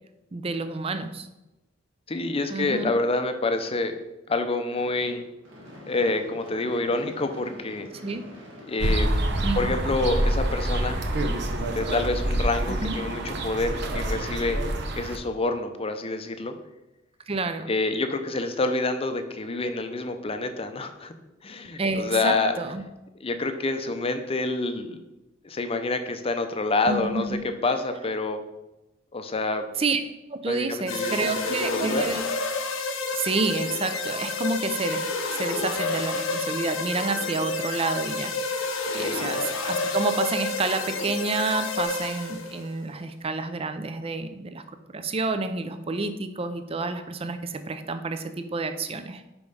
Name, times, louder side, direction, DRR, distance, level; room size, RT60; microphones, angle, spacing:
voice 1, 0.3-1.3 2.5-2.9 8.0-8.2 9.4-9.8 12.7-13.0 17.3-17.7 21.8-22.8 26.9-27.4 29.8-30.0 30.3-32.2 33.1-38.6 38.9-44.6 44.9-49.2, right 3 dB, 30° right, 10 dB, 0.5 m, -29 dB
voice 2, 2.1-4.0 4.3-5.2 5.9-7.9 8.6-9.1 9.5-11.0 11.7-14.6 15.0-16.5 17.7-21.1 21.4-22.6 23.2-25.0 25.4-28.4 29.1-29.6 30.5-32.0 38.9-39.2, left 3 dB, 30° left, 7 dB, 0.6 m, -27 dB
Gunshot gunfire / Fireworks, 4.8-11.0, equal, 85° right, 1.7 m, -46 dB
sound 1, 8.8-15.2, right 1 dB, 60° right, 0.8 m, -27 dB
sound 2, 30.9-42.6, left 3 dB, 90° left, 0.8 m, -29 dB
5.3 x 4.6 x 5.4 m, 0.98 s
head